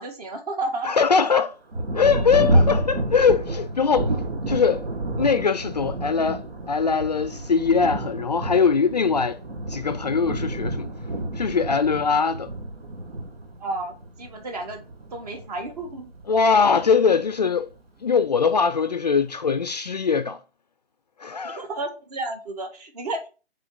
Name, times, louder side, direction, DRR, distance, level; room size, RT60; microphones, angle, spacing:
voice 1, 0.0-1.0 13.6-14.8 15.1-16.1 21.4-23.3, right 2 dB, 40° right, 1.5 m, -32 dB
voice 2, 0.8-1.5 1.9-4.1 4.5-4.8 5.2-9.4 9.7-10.9 11.4-12.5 16.3-17.7 18.0-20.4 21.2-21.6, left 5 dB, 40° left, 0.4 m, -21 dB
Thunder, 1.7-17.8 18.5-18.6 19.2-19.6, right 1 dB, 70° right, 1.7 m, -29 dB
6.4 x 3.9 x 5.3 m
hypercardioid pair, 155°, 31 cm